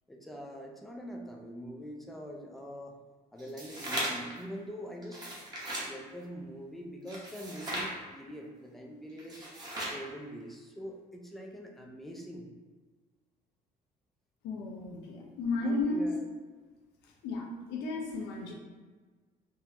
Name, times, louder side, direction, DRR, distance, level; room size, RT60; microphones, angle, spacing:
voice 1, 0.1-3.0 3.3-5.3 5.9-9.5 9.9-12.5 15.5-16.2, equal, ahead, 0 dB, 0.4 m, -44 dB
sound 1, 3.4-4.3 5.0-5.9 7.1-7.9 9.2-10.0, right 1 dB, 25° right, 0.9 m, -37 dB
voice 2, 14.4-16.1 17.2-18.5, left 2 dB, 90° left, -1 dB, 0.7 m, -33 dB
3.6 x 2.0 x 2.7 m, 1.4 s
cardioid pair, 110°, 17 cm